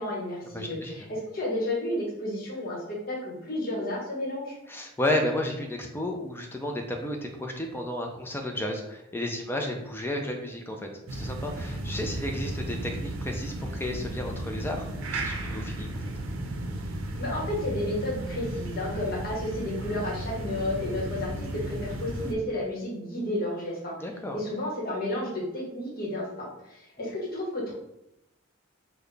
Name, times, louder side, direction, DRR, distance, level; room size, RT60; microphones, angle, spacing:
voice 1, 0.0-4.5 17.2-23.9 24.3-27.7, left 1 dB, 45° left, -3 dB, 1.0 m, -32 dB
voice 2, 0.5-1.1 4.7-16.1 24.0-24.4, left 1 dB, 10° left, 2 dB, 0.4 m, -32 dB
sound 1, 11.1-22.3, right 1 dB, 85° right, 0.5 m, -34 dB
3.9 x 2.2 x 3.2 m, 0.84 s
head